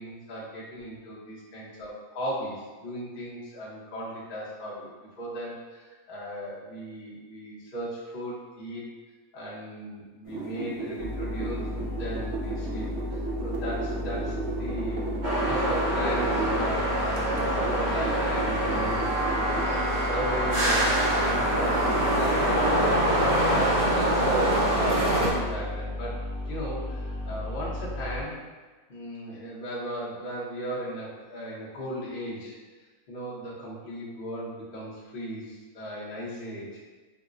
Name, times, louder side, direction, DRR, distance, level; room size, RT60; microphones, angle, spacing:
voice 1, 0.0-8.8 9.3-26.2 26.5-28.4 28.9-32.6 33.1-36.7, equal, 45° left, -7 dB, 0.9 m, -37 dB
sound 1, 10.3-16.7 17.2-19.6, right 2 dB, 85° right, 1.1 m, -34 dB
sound 2, 11.0-28.2, left 1 dB, 65° left, 1.2 m, -34 dB
sound 3, 15.2-25.3, right 1 dB, 45° right, 0.6 m, -25 dB
4.7 x 2.1 x 2.4 m, 1.3 s
omnidirectional pair, 1.4 m